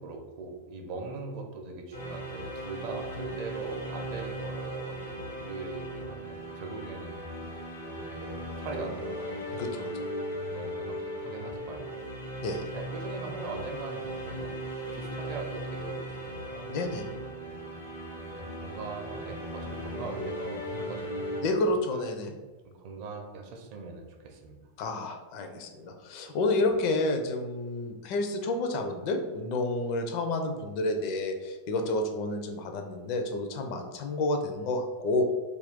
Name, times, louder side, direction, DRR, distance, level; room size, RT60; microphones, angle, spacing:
voice 1, 0.0-7.5 8.0-9.8 10.5-12.0 12.7-14.6 14.9-16.7 17.5-17.6 18.3-21.3 21.9-22.4 22.6-24.6, right 3 dB, 45° right, 3 dB, 0.5 m, -41 dB
sound 1, 1.9-21.4, equal, 80° left, 1.0 m, -37 dB
voice 2, 9.5-10.1 12.4-12.7 16.7-17.1 21.4-22.3 24.8-35.3, left 2 dB, 45° left, 5 dB, 0.4 m, -30 dB
2.5 x 2.3 x 3.5 m, 1.2 s
figure-of-eight pair, 90°, 0 cm